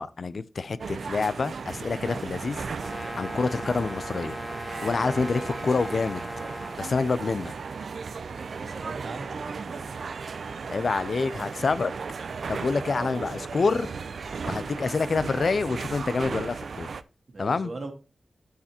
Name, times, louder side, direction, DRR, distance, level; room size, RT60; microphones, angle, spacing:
voice 1, 0.0-2.6 3.2-4.4 4.8-6.2 6.8-7.5 10.7-11.9 12.5-13.9 14.5-16.9 17.4-17.7, left 4 dB, 60° left, 0.5 m, -27 dB
sound 1, 0.8-17.0, right 5 dB, 75° right, 0.4 m, -36 dB
sound 2, 1.7-7.6, equal, ahead, 1.6 m, -50 dB
Brass instrument, 2.8-6.8, equal, 30° left, 2.2 m, -38 dB
voice 2, 8.2-9.9 17.3-17.9, right 3 dB, 50° right, 1.6 m, -40 dB
12.0 x 4.8 x 2.9 m
wide cardioid pair, 110°, 0 cm